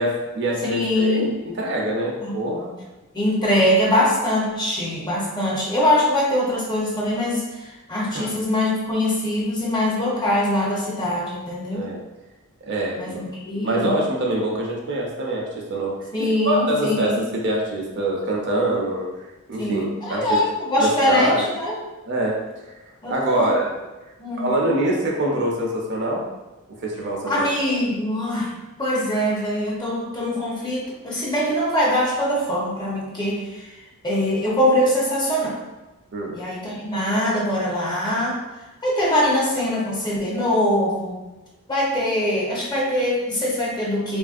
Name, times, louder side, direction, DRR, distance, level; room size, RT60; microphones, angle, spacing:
voice 1, 0.0-1.2 1.6-2.8 8.1-8.3 11.7-12.0 12.6-13.3 13.6-19.0 19.5-20.4 20.8-21.5 22.1-22.4 23.1-23.7 24.4-26.2 26.8-27.3 36.1-36.4, right 1 dB, 50° right, -2 dB, 0.5 m, -24 dB
voice 2, 0.6-1.3 2.2-2.3 3.1-7.4 7.9-11.9 13.0-13.9 16.1-17.2 19.6-21.7 23.0-23.6 24.2-24.5 27.3-28.5 28.8-33.7 34.0-35.6 36.3-38.4 38.8-41.2 41.7-44.2, left 1 dB, 20° left, -5 dB, 0.7 m, -22 dB
3.2 x 2.5 x 2.4 m, 1.1 s
head